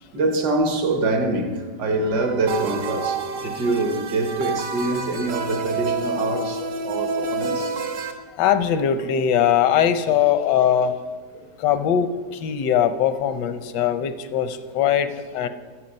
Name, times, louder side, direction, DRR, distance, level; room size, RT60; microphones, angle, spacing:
voice 1, 0.1-7.8 11.3-11.4 11.8-11.9, right 2 dB, 75° right, 1.8 m, -25 dB
sound 1, 2.5-8.1, right 4 dB, 90° right, 1.6 m, -28 dB
voice 2, 8.4-10.9 11.6-15.5, left 9 dB, 85° left, 1.4 m, -21 dB
13.0 x 7.2 x 5.3 m
omnidirectional pair, 1.8 m